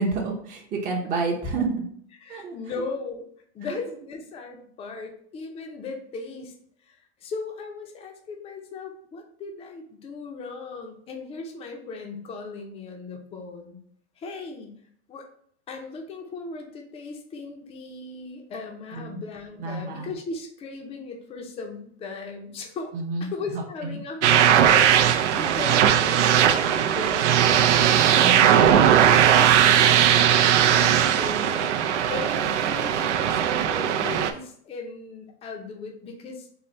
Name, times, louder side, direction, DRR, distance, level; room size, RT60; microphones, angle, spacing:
voice 1, 0.0-1.8 2.3-2.6 18.9-19.3 19.6-20.1 22.9-24.0 28.2-28.7, right 3 dB, 25° right, -1 dB, 0.7 m, -29 dB
voice 2, 2.2-3.3 3.5-6.5 6.9-13.8 14.2-14.8 15.1-15.3 15.7-22.9 23.2-27.6 28.1-31.7 32.1-36.5, left 4 dB, 15° left, 2 dB, 0.5 m, -37 dB
sound 1, 24.2-34.3, right 9 dB, 90° right, 0.5 m, -19 dB
3.9 x 2.2 x 4.2 m, 0.62 s
supercardioid pair, 135°, 35 cm